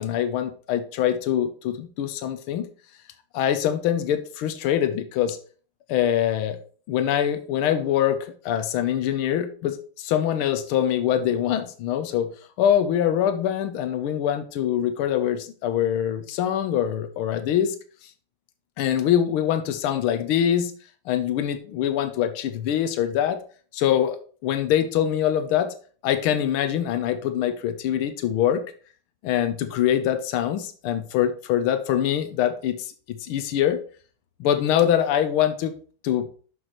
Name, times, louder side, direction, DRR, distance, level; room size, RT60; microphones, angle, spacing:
voice 1, 0.0-2.7 3.3-5.4 5.9-6.6 6.9-12.3 12.6-17.8 18.8-20.7 21.1-23.4 23.7-24.2 24.4-25.7 26.0-28.6 29.2-33.8 34.4-35.7 36.0-36.3, left 10 dB, 85° left, 9 dB, 1.6 m, -24 dB
7.7 x 6.5 x 4.2 m, 0.42 s
omnidirectional pair, 2.3 m